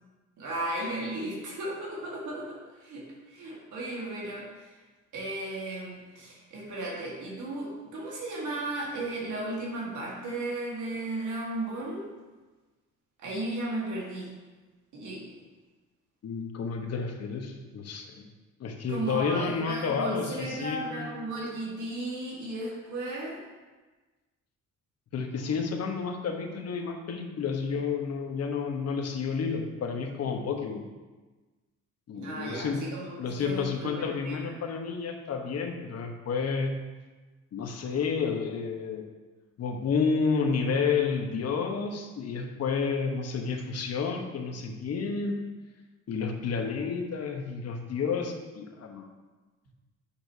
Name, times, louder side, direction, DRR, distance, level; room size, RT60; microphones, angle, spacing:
voice 1, 0.4-4.8 5.1-12.1 13.2-14.3 14.9-15.3 18.9-23.4 32.1-34.6, right 2 dB, 75° right, -4 dB, 1.7 m, -35 dB
voice 2, 16.2-18.3 18.6-21.1 25.1-30.8 32.1-32.8 33.2-36.7 37.5-39.0 39.6-45.4 46.1-49.0, left 5 dB, 55° left, 3 dB, 1.1 m, -30 dB
8.5 x 5.9 x 2.8 m, 1.3 s
cardioid pair, 90°, 30 cm